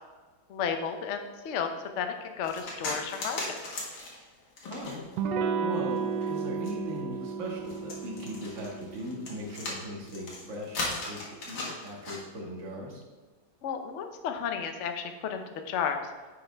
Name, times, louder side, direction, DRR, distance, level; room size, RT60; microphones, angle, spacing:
voice 1, 0.5-1.7 2.0-3.6 13.6-16.0, left 7 dB, 60° left, 6 dB, 0.8 m, -33 dB
sound 1, 2.4-5.3 5.8-12.2, left 2 dB, 75° left, 2.4 m, -37 dB
voice 2, 4.7-5.0 5.6-11.2 11.4-13.0, equal, 40° right, -2 dB, 1.9 m, -39 dB
Electric guitar / Strum, 5.2-10.5, right 5 dB, 70° right, 1.2 m, -34 dB
9.8 x 6.3 x 3.4 m, 1.3 s
omnidirectional pair, 2.1 m